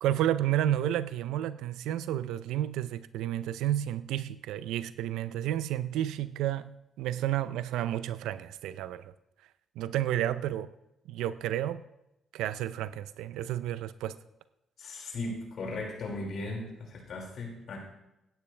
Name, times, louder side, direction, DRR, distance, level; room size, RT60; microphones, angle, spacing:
voice 1, 0.0-6.7 7.0-9.0 9.8-10.7 11.1-11.8 12.3-14.1, right 12 dB, 90° right, 15 dB, 0.6 m, -31 dB
voice 2, 14.8-17.8, left 2 dB, 60° left, -1 dB, 5.3 m, -37 dB
16.5 x 12.0 x 3.4 m, 0.90 s
cardioid pair, 85°, 0 cm